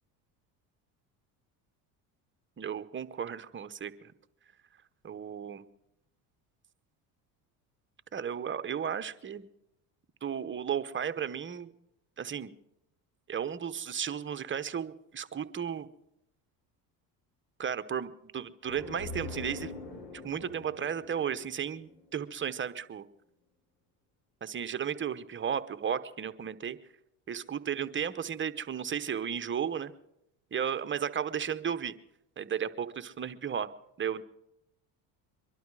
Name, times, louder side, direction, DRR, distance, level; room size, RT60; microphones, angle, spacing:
voice 1, 2.6-4.1 5.0-5.6 8.1-9.5 10.2-11.7 12.2-12.5 13.3-15.9 17.6-23.1 24.4-26.8 27.3-29.9 30.5-31.9 32.4-33.7 34.0-34.2, right 8 dB, 25° right, 11 dB, 0.9 m, -34 dB
sound 1, 18.6-22.3, left 3 dB, 60° left, 7.2 m, -43 dB
23.5 x 12.0 x 4.8 m, 0.82 s
supercardioid pair, 90°, 43 cm